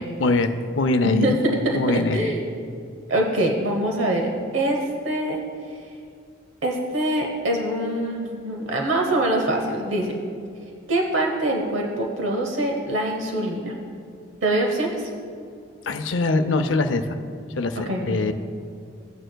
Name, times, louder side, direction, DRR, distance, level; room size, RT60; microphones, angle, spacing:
voice 1, 0.0-1.3 1.7-2.3 15.8-17.2 17.6-18.3, left 3 dB, 80° left, 8 dB, 0.6 m, -23 dB
voice 2, 1.0-2.5 3.1-5.4 6.6-10.1 10.9-13.7 14.4-15.1 17.8-18.2, right 1 dB, 85° right, 1 dB, 0.9 m, -24 dB
15.5 x 9.0 x 2.2 m, 2.3 s
head